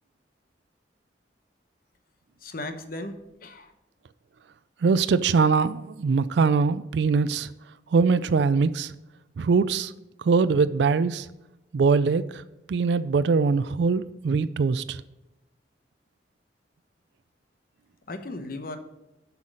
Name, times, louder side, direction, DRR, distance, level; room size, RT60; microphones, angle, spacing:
voice 1, 2.4-3.7 18.1-18.8, left 2 dB, 55° left, 8 dB, 0.9 m, -36 dB
voice 2, 4.8-7.5 7.9-8.9 9.4-9.9 10.2-11.3 11.7-12.4 12.7-15.0, right 5 dB, 75° right, 14 dB, 0.4 m, -22 dB
8.0 x 5.7 x 6.3 m, 0.97 s
head